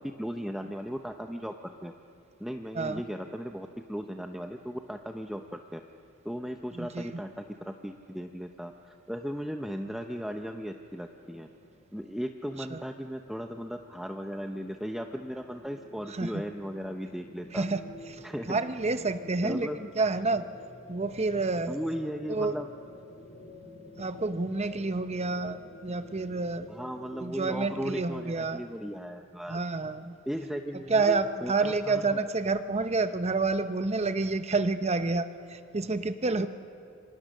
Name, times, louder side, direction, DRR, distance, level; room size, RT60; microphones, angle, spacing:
voice 1, 0.0-1.9 2.4-5.8 6.2-11.5 11.9-17.6 18.2-18.6 19.4-19.8 21.7-22.7 26.7-29.6 30.3-32.2 36.3-36.5, equal, ahead, 4 dB, 0.7 m, -37 dB
voice 2, 6.7-7.2 12.7-12.8 16.1-16.4 17.5-17.8 18.1-20.4 20.9-21.8 22.3-22.6 24.0-26.7 27.2-28.6 29.5-30.2 30.9-36.5, right 3 dB, 30° right, 10 dB, 0.8 m, -29 dB
sound 1, 11.1-28.3, left 1 dB, 45° left, 1.8 m, -50 dB
27.5 x 24.0 x 6.6 m, 2.5 s
head